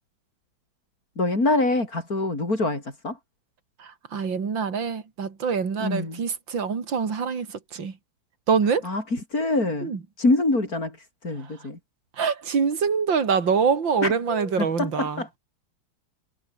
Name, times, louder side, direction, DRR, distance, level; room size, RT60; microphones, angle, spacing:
voice 1, 1.2-3.2 5.8-6.2 8.8-9.9 10.2-11.8 14.0-15.4, left 2 dB, 45° left, 6.5 m, -25 dB
voice 2, 3.8-7.9 8.5-8.9 9.8-10.0 11.4-11.5 12.2-15.2, right 6 dB, 70° right, 3.4 m, -25 dB
omnidirectional pair, 2.1 m